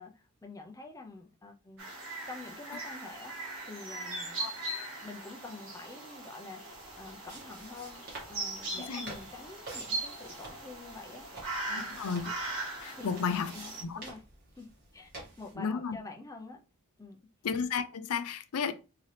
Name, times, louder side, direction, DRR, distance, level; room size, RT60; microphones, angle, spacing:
voice 1, 0.0-1.9 2.3-4.4 5.0-6.6 7.0-8.0 8.3-12.0 13.0-13.2 13.5-14.2 14.6-16.6 17.0-17.2, left 3 dB, 15° left, 0.5 m, -47 dB
sound 1, 1.8-13.8, right 2 dB, 60° right, 1.6 m, -40 dB
sound 2, 6.7-15.5, right 2 dB, 40° right, 1.8 m, -50 dB
voice 2, 11.7-12.3 12.8-13.5 13.8-14.0 15.6-16.0 17.4-18.7, left 6 dB, 75° left, 0.4 m, -33 dB
3.7 x 2.8 x 3.2 m
head